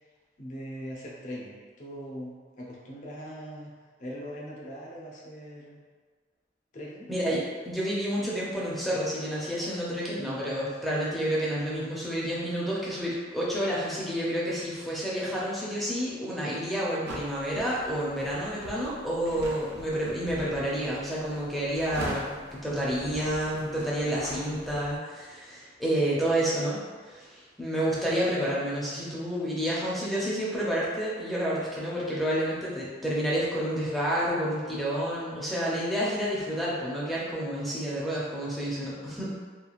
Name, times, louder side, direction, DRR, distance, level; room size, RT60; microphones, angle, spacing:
voice 1, 0.4-3.7 4.0-5.8 6.7-7.1 26.1-26.3, equal, 45° left, -4 dB, 0.5 m, -41 dB
voice 2, 7.1-26.8 27.1-39.5, equal, ahead, -7 dB, 0.5 m, -29 dB
sound 1, 17.1-25.0, right 1 dB, 65° right, 0.5 m, -42 dB
3.0 x 2.3 x 2.4 m, 1.5 s
head